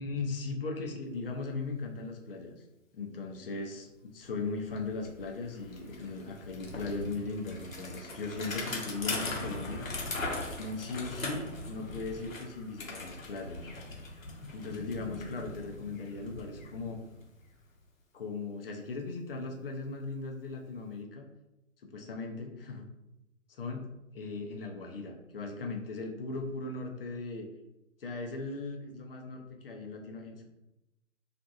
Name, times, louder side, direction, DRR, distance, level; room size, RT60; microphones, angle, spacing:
voice 1, 0.0-2.6 2.9-9.8 10.6-13.7 14.5-17.0 18.1-21.3 21.8-22.9 23.5-23.8 24.1-27.5 28.0-30.4, left 3 dB, 45° left, 2 dB, 0.5 m, -38 dB
Bicycle, 4.3-4.4 4.6-17.5, left 2 dB, 80° left, 0.8 m, -40 dB
2.7 x 2.5 x 2.4 m, 0.92 s
figure-of-eight pair, 145°, 39 cm